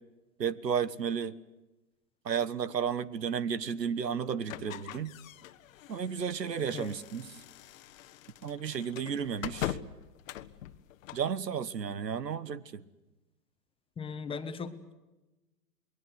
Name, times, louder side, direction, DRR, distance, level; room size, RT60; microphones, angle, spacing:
voice 1, 0.4-1.3 2.2-5.1 5.9-7.2 8.4-9.8 11.1-12.8, right 7 dB, 90° right, 18 dB, 1.5 m, -33 dB
sound 1, 4.5-11.3, left 12 dB, 55° left, 1.3 m, -42 dB
voice 2, 14.0-14.9, left 5 dB, 10° left, 9 dB, 1.3 m, -38 dB
27.5 x 21.5 x 8.0 m, 1.1 s
hypercardioid pair, 135°, 48 cm